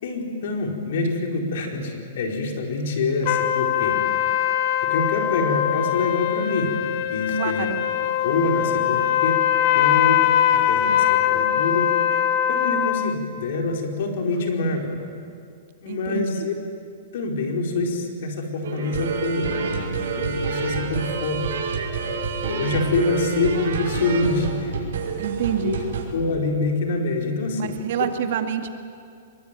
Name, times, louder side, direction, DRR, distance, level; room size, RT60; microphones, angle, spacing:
voice 1, 0.0-4.0 4.8-6.8 7.1-7.7 8.2-9.4 9.7-10.2 10.5-11.9 12.5-14.9 15.8-16.5 17.1-21.4 22.4-24.9 25.6-25.8 26.1-27.7, left 3 dB, 65° left, 2 dB, 4.7 m, -26 dB
sound 1, 3.2-13.1, left 11 dB, 45° left, 1.4 m, -22 dB
voice 2, 7.4-7.8 15.9-16.5 25.2-25.8 27.6-28.7, right 9 dB, 55° right, 7 dB, 2.0 m, -27 dB
sound 2, 18.6-26.0, right 5 dB, 75° right, 6.0 m, -28 dB
25.0 x 22.0 x 9.2 m, 2.3 s
hypercardioid pair, 155°, 0 cm